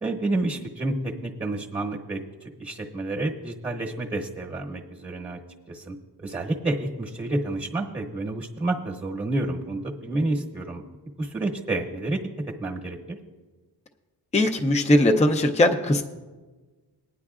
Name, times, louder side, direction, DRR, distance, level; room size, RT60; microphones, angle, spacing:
voice 1, 0.0-5.4 5.7-10.8 11.2-12.2 12.6-13.2, right 2 dB, 15° right, 0 dB, 1.1 m, -29 dB
voice 2, 14.3-16.0, left 1 dB, 15° left, 4 dB, 0.5 m, -20 dB
20.0 x 10.0 x 2.4 m, 1.3 s
wide cardioid pair, 165°, 41 cm